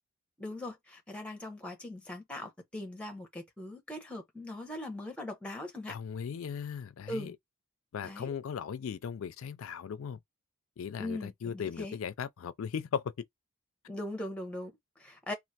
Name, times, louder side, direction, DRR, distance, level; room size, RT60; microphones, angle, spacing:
voice 1, 0.4-6.0 7.1-7.3 8.0-8.3 11.0-12.0 13.9-15.3, left 1 dB, 5° left, 0.8 m, -40 dB
voice 2, 5.9-7.4 7.9-10.2 10.8-13.0, left 7 dB, 65° left, 0.3 m, -37 dB
3.1 x 2.5 x 2.7 m
head